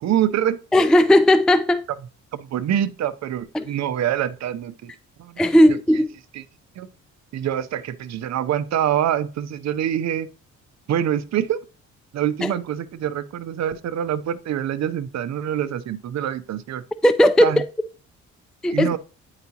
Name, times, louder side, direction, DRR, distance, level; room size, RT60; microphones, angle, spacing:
voice 1, 0.0-0.6 2.3-4.9 5.2-5.4 5.7-5.8 6.3-6.4 6.8-6.9 7.3-10.3 10.9-11.6 12.1-16.8 17.4-17.6 18.7-19.0, right 10 dB, 60° right, 0.7 m, -25 dB
voice 2, 0.7-1.8 3.5-3.7 5.4-6.1 12.4-12.5 17.0-17.5 18.6-19.0, left 1 dB, ahead, 0.4 m, -16 dB
9.3 x 4.9 x 2.9 m
cardioid pair, 90°, 30 cm